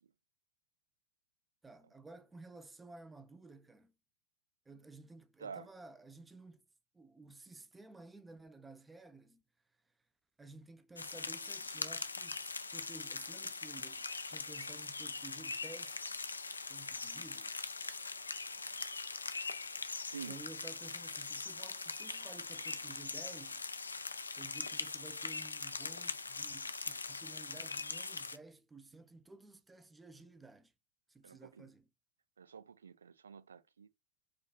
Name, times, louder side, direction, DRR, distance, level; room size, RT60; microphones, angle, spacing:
voice 1, 1.6-3.9 4.7-6.7 6.9-9.4 10.4-16.2 16.7-17.5 20.3-23.7 24.4-30.7 31.1-31.9, right 3 dB, 10° right, 0.4 m, -54 dB
sound 1, 11.0-28.4, left 4 dB, 80° left, 0.3 m, -41 dB
voice 2, 31.2-31.7 32.4-33.9, right 6 dB, 70° right, 0.4 m, -48 dB
4.9 x 2.3 x 2.3 m
figure-of-eight pair, 90°, 0 cm